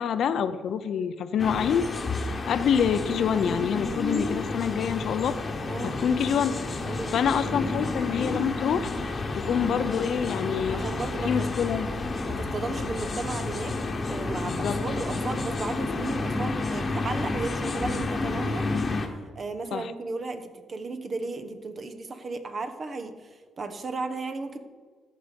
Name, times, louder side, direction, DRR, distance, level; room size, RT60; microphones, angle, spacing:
voice 1, 0.0-1.9 2.5-5.4 5.8-6.5 7.1-8.9 9.3-10.8 11.2-11.9 14.5-14.8 19.7-19.9, left 7 dB, 65° left, 12 dB, 0.6 m, -26 dB
sound 1, 1.4-19.1, left 3 dB, 35° left, 1.2 m, -30 dB
voice 2, 6.8-7.2 7.4-7.6 10.7-11.5 12.3-13.8 14.1-18.7 19.3-23.3 23.6-24.6, right 3 dB, 40° right, 8 dB, 1.0 m, -34 dB
13.5 x 5.0 x 5.3 m, 1.5 s
cardioid pair, 90°, 0 cm